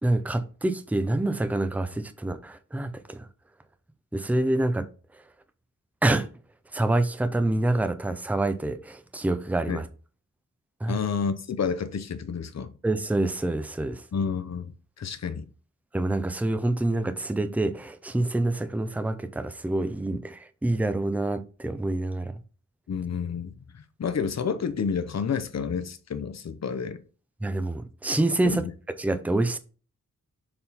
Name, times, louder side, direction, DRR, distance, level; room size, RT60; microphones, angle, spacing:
voice 1, 0.0-3.3 4.1-4.9 6.0-6.3 6.7-9.9 10.8-11.0 12.8-14.0 15.9-22.3 27.4-28.6 29.0-29.6, right 2 dB, 5° right, 0.5 m, -26 dB
voice 2, 10.9-12.8 14.1-15.5 22.9-27.0 28.4-28.6, left 6 dB, 55° left, 0.8 m, -30 dB
7.0 x 3.7 x 4.2 m
wide cardioid pair, 140°, 32 cm